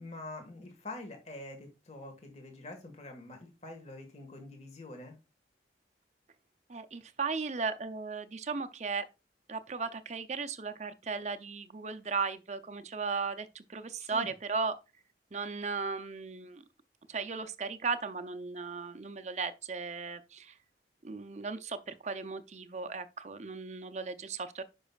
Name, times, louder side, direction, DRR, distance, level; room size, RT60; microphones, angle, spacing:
voice 1, 0.0-5.2 14.0-14.3, left 2 dB, 35° left, 1.6 m, -45 dB
voice 2, 6.7-9.0 9.5-14.8 15.3-16.6 17.1-20.5 21.0-24.6, right 4 dB, 40° right, 0.6 m, -36 dB
10.0 x 5.4 x 2.4 m
head